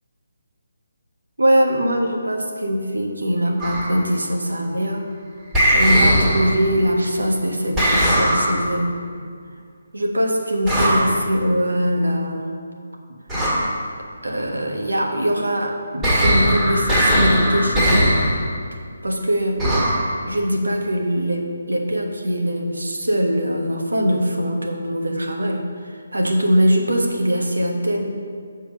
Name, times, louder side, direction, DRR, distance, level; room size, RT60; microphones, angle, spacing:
voice 1, 1.4-5.0 5.7-8.9 9.9-12.5 14.2-18.1 19.0-19.6 20.3-28.2, equal, 75° right, 1 dB, 1.2 m, -22 dB
sound 1, 3.6-4.0 5.5-6.8 7.8-8.8 10.7-11.2 13.3-13.8 16.0-18.5 19.6-20.1, equal, 15° right, 1.7 m, -19 dB
7.1 x 4.6 x 6.1 m, 2.1 s
figure-of-eight pair, 145°, 0 cm